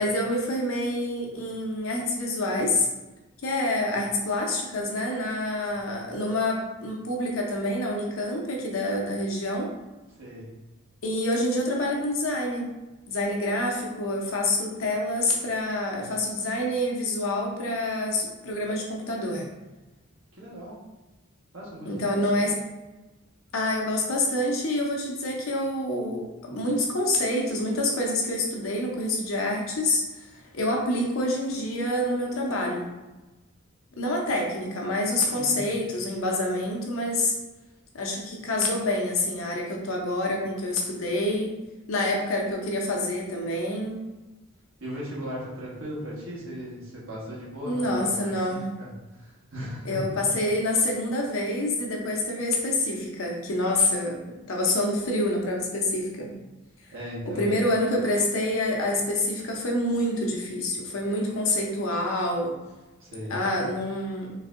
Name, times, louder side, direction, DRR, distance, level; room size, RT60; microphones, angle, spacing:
voice 1, 0.0-2.9 3.4-9.7 11.0-12.7 13.1-19.5 21.9-22.6 23.5-30.3 30.5-32.9 34.0-37.3 37.9-41.5 41.9-44.0 47.6-48.6 49.8-56.3 57.3-62.5 63.3-64.3, left 1 dB, 75° left, -1 dB, 0.7 m, -27 dB
voice 2, 20.3-20.8 21.5-22.4 35.3-35.7 44.8-50.1 56.9-57.5 63.0-63.4, equal, 75° right, -5 dB, 1.2 m, -37 dB
3.9 x 2.6 x 2.5 m, 1.1 s
head